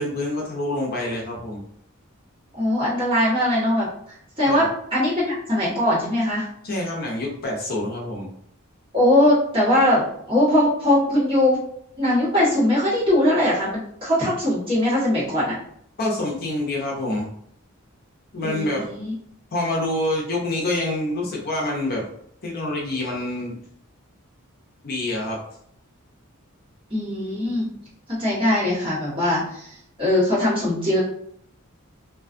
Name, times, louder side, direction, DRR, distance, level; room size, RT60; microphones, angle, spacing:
voice 1, 0.0-1.6 4.5-4.7 6.6-8.3 16.0-17.3 18.3-18.9 19.5-22.0 22.4-23.6 24.8-25.4, left 1 dB, 45° left, -1 dB, 0.5 m, -26 dB
voice 2, 2.6-3.9 4.4-6.5 8.9-11.6 12.0-15.6 18.4-19.1 26.9-27.7 28.1-31.0, left 1 dB, 25° right, -9 dB, 1.2 m, -21 dB
2.4 x 2.3 x 2.4 m, 0.69 s
head